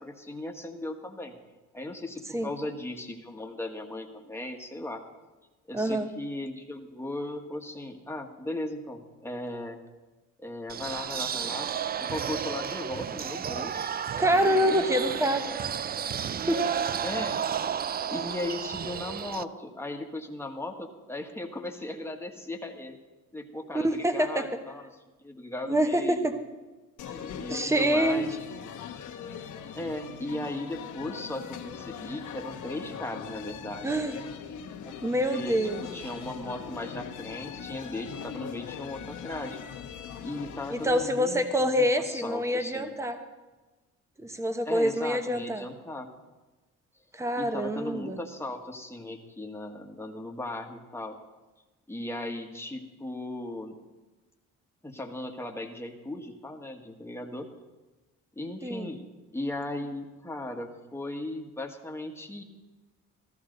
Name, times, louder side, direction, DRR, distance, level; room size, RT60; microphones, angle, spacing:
voice 1, 0.0-1.4 1.7-5.0 5.7-9.8 10.4-11.7 12.0-13.9 14.7-14.9 17.0-17.4 18.1-23.0 23.3-24.9 25.2-26.4 27.1-28.4 29.7-33.9 34.8-35.0 35.2-39.6 40.2-42.9 44.6-46.1 47.4-51.2 51.9-53.8 54.8-57.5 58.3-59.0 59.3-62.4, left 1 dB, 10° left, 3 dB, 1.6 m, -37 dB
voice 2, 5.7-6.1 14.2-15.5 16.3-16.6 23.7-24.5 25.6-26.3 27.5-28.3 33.8-34.2 35.0-35.8 40.7-43.2 44.2-45.7 47.1-48.2 58.6-58.9, equal, 10° right, 8 dB, 1.1 m, -26 dB
sound 1, 10.7-19.4, right 8 dB, 30° right, 0.4 m, -32 dB
sound 2, 27.0-41.1, left 8 dB, 75° left, 1.2 m, -41 dB
14.5 x 14.5 x 3.9 m, 1.2 s
cardioid pair, 90°, 30 cm